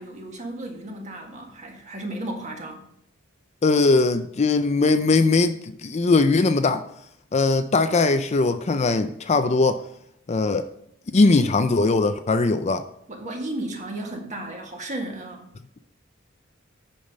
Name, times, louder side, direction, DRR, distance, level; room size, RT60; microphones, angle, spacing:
voice 1, 0.0-2.9 13.1-15.5, right 1 dB, 35° right, 1.7 m, -34 dB
voice 2, 3.6-6.9 7.3-9.8 10.3-10.7 11.1-12.9, left 3 dB, 35° left, 0.4 m, -20 dB
8.7 x 5.6 x 5.3 m
head